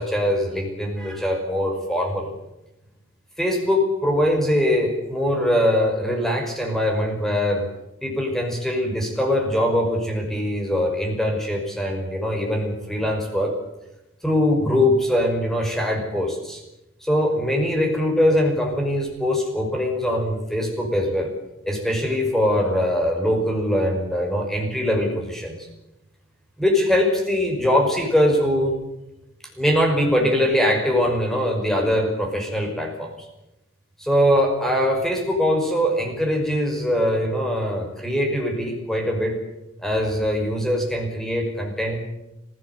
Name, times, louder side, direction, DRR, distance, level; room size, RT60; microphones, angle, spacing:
voice 1, 0.0-2.3 3.4-7.7 8.0-13.6 14.2-16.6 17.0-21.3 21.7-25.7 26.6-28.8 29.6-33.1 34.0-39.4 39.8-42.0, left 1 dB, ahead, 2 dB, 5.6 m, -22 dB
26.0 x 17.0 x 8.2 m, 0.92 s
head